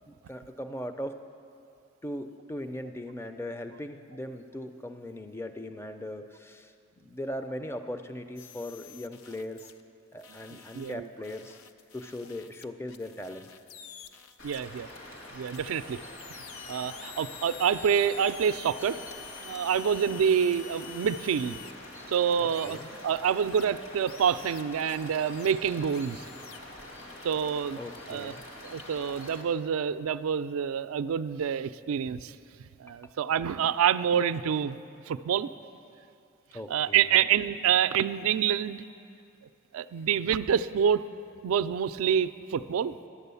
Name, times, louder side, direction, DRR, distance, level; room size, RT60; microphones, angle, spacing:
voice 1, 0.1-1.1 2.0-6.7 7.0-9.7 10.1-11.6 11.9-13.5 22.4-22.9 27.7-28.5 32.9-33.1 36.5-37.3, left 1 dB, 10° left, 7 dB, 0.4 m, -39 dB
sound 1, 8.4-9.8 10.2-14.6 15.5-21.7 22.5-23.7 24.1-25.5 25.9-26.6, left 9 dB, 85° left, 0.5 m, -48 dB
voice 2, 10.7-11.1 14.4-14.9 15.3-16.0 16.7-19.0 19.4-21.6 22.1-26.2 27.2-27.8 28.1-28.3 28.6-32.3 32.6-34.8 35.1-35.5 36.7-38.8 39.7-41.0 41.4-42.9, right 8 dB, 85° right, 13 dB, 0.3 m, -27 dB
sound 2, 14.4-29.4, left 1 dB, 65° left, 1.7 m, -45 dB
11.5 x 8.9 x 6.9 m, 2.5 s
head